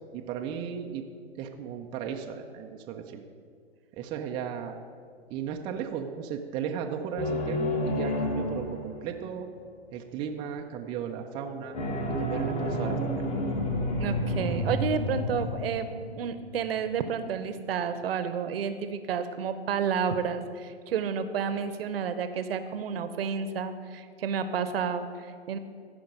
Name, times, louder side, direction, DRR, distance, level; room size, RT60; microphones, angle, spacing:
voice 1, 0.1-1.0 1.4-3.2 4.0-4.8 5.3-9.5 9.9-11.8 12.2-13.3, right 7 dB, 15° right, 3 dB, 0.4 m, -35 dB
sound 1, 7.2-9.4 11.7-16.7, left 1 dB, 20° left, 1.1 m, -30 dB
voice 2, 14.0-25.6, right 6 dB, 60° right, 11 dB, 0.8 m, -31 dB
14.5 x 5.2 x 5.2 m, 2.1 s
hypercardioid pair, 120°, 33 cm